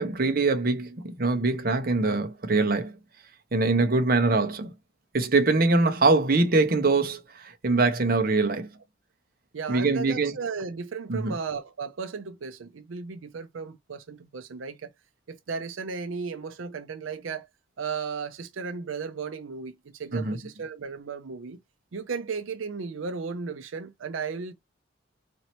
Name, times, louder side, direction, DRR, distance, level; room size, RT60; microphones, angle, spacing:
voice 1, 0.0-2.9 3.5-4.7 5.1-8.7 9.7-10.3 11.1-11.3 20.1-20.4, right 3 dB, 50° right, 0.9 m, -23 dB
voice 2, 9.5-14.9 15.3-17.5 17.8-21.6 21.9-24.5, right 5 dB, 90° right, 0.5 m, -35 dB
4.3 x 2.8 x 2.9 m
head